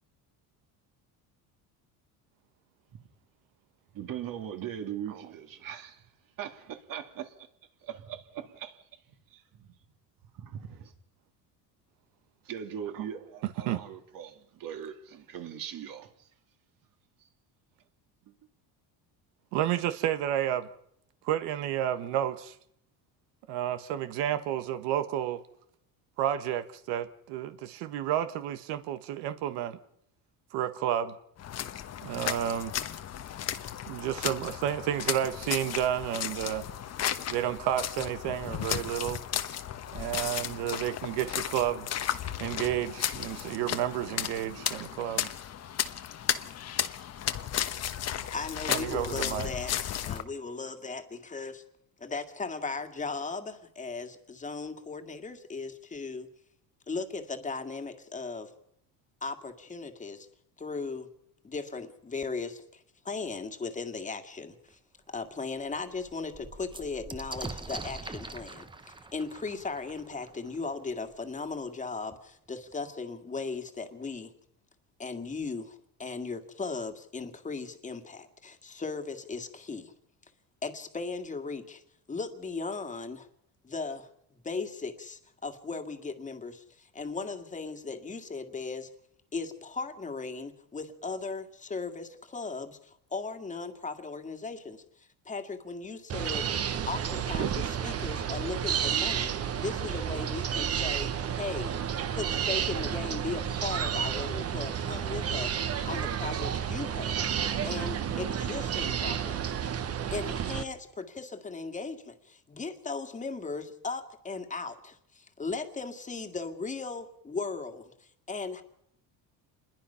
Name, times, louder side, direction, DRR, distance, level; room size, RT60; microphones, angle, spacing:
voice 1, 3.9-6.1 6.4-7.3 8.1-8.7 10.4-10.9 12.4-16.3 17.2-17.3, right 9 dB, 55° right, 2.6 m, -40 dB
voice 2, 19.5-20.7 21.2-22.5 23.5-25.4 26.2-29.8 30.5-31.1 32.0-32.7 33.9-36.6 37.3-39.2 39.9-41.9 42.4-45.3 48.7-49.5, right 11 dB, 85° right, 1.4 m, -31 dB
sound 1, 31.4-50.2, left 10 dB, 40° left, 1.1 m, -34 dB
voice 3, 47.7-51.6 52.0-56.3 56.9-58.5 59.2-60.3 60.6-61.1 61.4-64.8 65.1-68.7 69.1-74.3 75.0-79.9 80.6-81.8 82.1-83.3 83.6-84.1 84.4-88.9 89.3-96.5 96.9-99.3 99.6-101.1 101.4-101.7 102.1-109.5 110.1-118.6, left 4 dB, 20° left, 2.0 m, -37 dB
sound 2, 64.7-64.8 65.2-65.3 65.6-71.2 72.1-72.2 72.5-73.1, right 3 dB, 10° right, 1.0 m, -44 dB
sound 3, 96.1-110.6, right 8 dB, 35° right, 1.2 m, -31 dB
27.5 x 21.5 x 5.7 m
cardioid pair, 140°, 40 cm